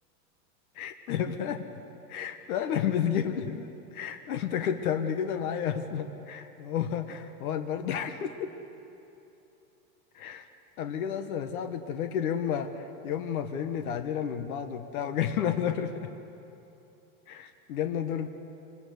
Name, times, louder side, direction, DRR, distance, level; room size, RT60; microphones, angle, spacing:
voice 1, 0.7-1.7 2.1-8.5 10.1-10.5 10.8-16.1 17.3-18.3, left 8 dB, 75° left, 8 dB, 1.5 m, -31 dB
24.5 x 21.0 x 8.1 m, 2.9 s
supercardioid pair, 145°, 44 cm